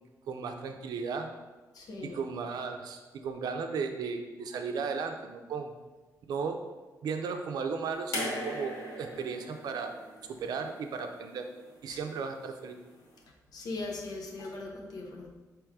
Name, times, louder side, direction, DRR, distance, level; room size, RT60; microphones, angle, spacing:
voice 1, 0.3-1.3 2.0-5.7 6.3-6.6 7.0-9.9 10.3-11.5 11.8-12.8, right 5 dB, 85° right, 6 dB, 0.4 m, -35 dB
voice 2, 1.7-2.2 11.9-12.0 13.5-15.3, left 2 dB, 75° left, 1 dB, 0.7 m, -39 dB
sound 1, 8.1-11.3 12.5-12.6, equal, 60° left, 1.1 m, -38 dB
4.7 x 3.0 x 3.5 m, 1.2 s
wide cardioid pair, 150°, 7 cm